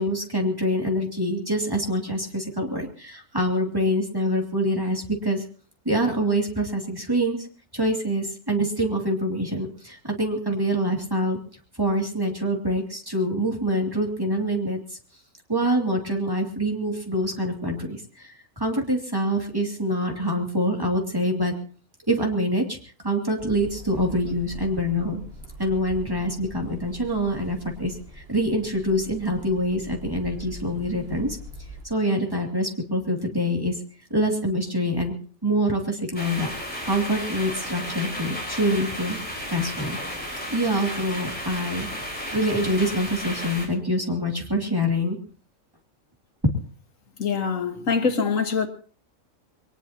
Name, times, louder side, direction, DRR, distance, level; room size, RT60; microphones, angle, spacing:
voice 1, 0.0-5.4 5.8-7.5 7.7-11.4 11.8-15.0 15.5-21.5 22.1-22.8 23.0-25.2 25.6-31.4 31.8-33.7 34.1-35.1 35.4-36.5 36.8-39.2 39.5-40.0 40.5-41.9 42.3-45.2 46.4-46.5, equal, 15° right, 2.6 m, -25 dB
sound 1, 23.4-31.8, right 1 dB, 50° right, 3.9 m, -42 dB
sound 2, 36.1-43.7, equal, 5° left, 4.8 m, -33 dB
voice 2, 47.2-48.7, left 5 dB, 90° left, 1.9 m, -24 dB
22.5 x 19.0 x 2.9 m
omnidirectional pair, 1.3 m